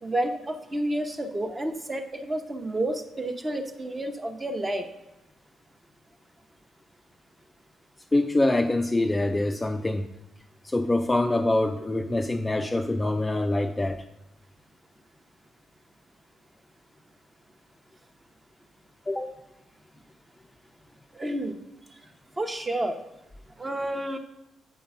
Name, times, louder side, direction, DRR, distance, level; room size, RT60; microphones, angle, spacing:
voice 1, 0.0-4.9 21.1-21.6 21.9-22.0 22.4-23.0 23.6-24.2, right 1 dB, 20° right, 0.8 m, -30 dB
voice 2, 8.1-10.1 10.6-14.0 19.1-19.4, left 2 dB, 15° left, 0.4 m, -25 dB
7.9 x 3.8 x 5.5 m
cardioid pair, 90°, 0 cm